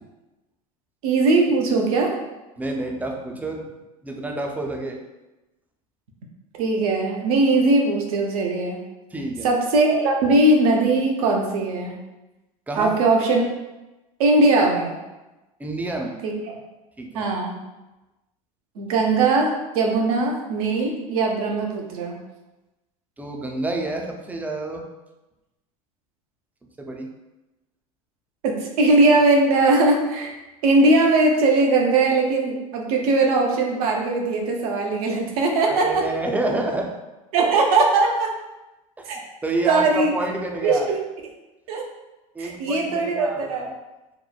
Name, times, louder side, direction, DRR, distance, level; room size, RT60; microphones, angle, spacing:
voice 1, 1.0-2.1 6.6-8.8 9.4-11.9 12.7-13.4 14.2-15.0 16.2-16.6 17.1-17.5 18.8-22.2 28.4-30.3 30.6-36.0 37.3-38.3 39.0-39.2 39.6-40.1 40.6-41.0 41.7-41.8 42.4-43.6, right 2 dB, 80° right, 0 dB, 0.6 m, -20 dB
voice 2, 2.6-3.7 4.0-5.0 9.1-9.5 12.7-12.9 15.6-16.2 17.0-17.2 23.2-24.8 26.8-27.1 35.7-36.9 39.0-40.9 42.3-43.7, right 2 dB, 10° right, 1 dB, 0.4 m, -28 dB
3.0 x 2.1 x 2.3 m, 1.0 s
hypercardioid pair, 90°, 19 cm